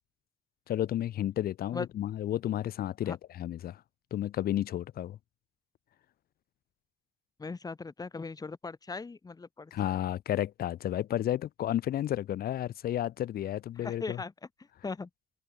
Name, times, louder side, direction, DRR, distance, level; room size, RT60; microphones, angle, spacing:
voice 1, 0.7-3.8 4.1-5.2 9.7-14.2, left 12 dB, 65° left, 5.7 m, -32 dB
voice 2, 7.4-9.9 13.8-14.3 14.8-15.1, left 4 dB, 20° left, 4.6 m, -39 dB
cardioid pair, 110°, 17 cm